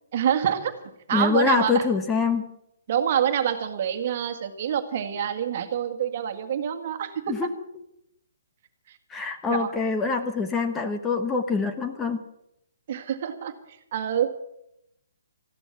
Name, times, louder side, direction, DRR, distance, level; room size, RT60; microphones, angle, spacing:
voice 1, 0.1-0.8 1.1-1.8 2.9-7.4 8.9-9.0 9.5-9.7 12.9-13.5 13.9-14.3, right 9 dB, 45° right, 7 dB, 1.8 m, -26 dB
voice 2, 1.1-2.4 7.3-7.5 9.1-12.2, left 4 dB, 15° left, 6 dB, 1.2 m, -25 dB
15.0 x 11.5 x 7.2 m, 0.79 s
hypercardioid pair, 140°, 0 cm